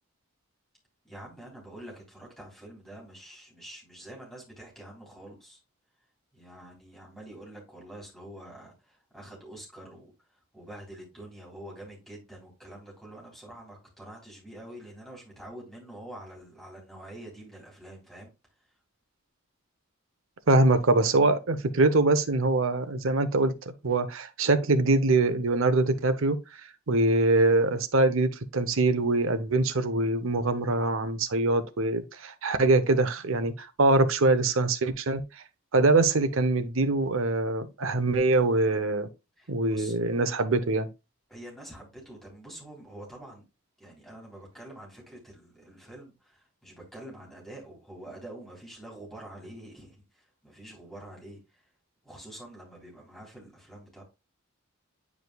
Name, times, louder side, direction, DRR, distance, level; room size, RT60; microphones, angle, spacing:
voice 1, 1.1-5.6 6.3-18.3 39.4-39.9 41.3-43.4 43.8-51.6 52.0-54.0, right 1 dB, ahead, 3.6 m, -46 dB
voice 2, 20.5-26.4 26.9-35.2 35.7-39.1 39.5-40.9, right 2 dB, 65° right, 0.8 m, -24 dB
9.4 x 5.0 x 2.3 m
head